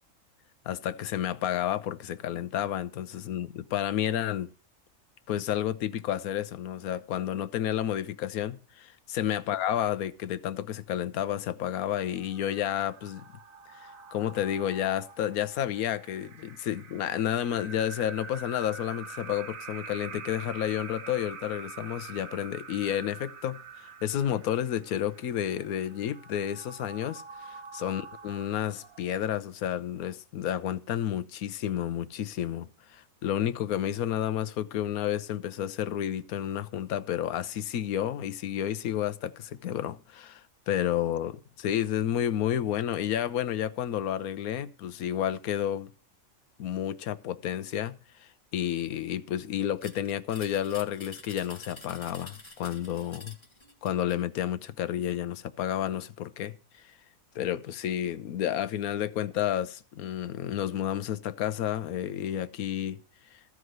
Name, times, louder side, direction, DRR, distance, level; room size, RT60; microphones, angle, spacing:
voice 1, 0.6-4.5 5.3-13.2 13.7-45.9 46.6-53.3 53.8-56.5 56.8-56.9 57.3-63.0, left 10 dB, 85° left, 1.2 m, -31 dB
sound 1, 12.0-29.4, right 5 dB, 70° right, 1.4 m, -46 dB
sound 2, 49.8-54.2, left 2 dB, 20° left, 1.5 m, -48 dB
14.5 x 4.8 x 7.9 m
omnidirectional pair, 1.5 m